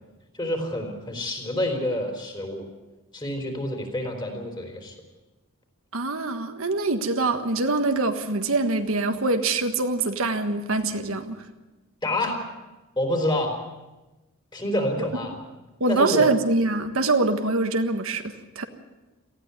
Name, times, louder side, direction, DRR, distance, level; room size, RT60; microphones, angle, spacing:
voice 1, 0.3-2.7 3.1-4.9 12.0-12.4 13.0-13.6 14.5-15.3 15.9-16.3, left 1 dB, 20° left, 3 dB, 3.8 m, -27 dB
voice 2, 5.9-11.4 15.0-15.1 15.8-18.6, right 3 dB, 70° right, 6 dB, 1.5 m, -24 dB
18.5 x 14.5 x 9.6 m, 1.1 s
head